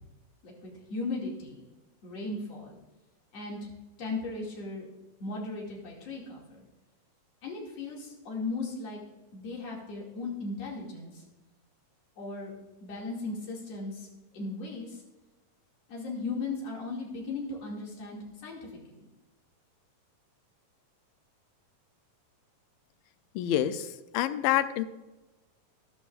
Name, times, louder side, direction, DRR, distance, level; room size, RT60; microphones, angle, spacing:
voice 1, 0.4-1.6 2.0-2.8 3.3-3.7 4.0-4.9 5.2-6.6 7.4-9.0 9.3-11.2 12.2-12.5 12.8-14.1 14.3-15.0 15.9-19.1, left 3 dB, 50° left, -2 dB, 3.2 m, -37 dB
voice 2, 23.4-23.9 24.1-24.8, left 12 dB, 85° left, 11 dB, 2.3 m, -27 dB
13.5 x 11.0 x 2.5 m, 1.1 s
omnidirectional pair, 4.0 m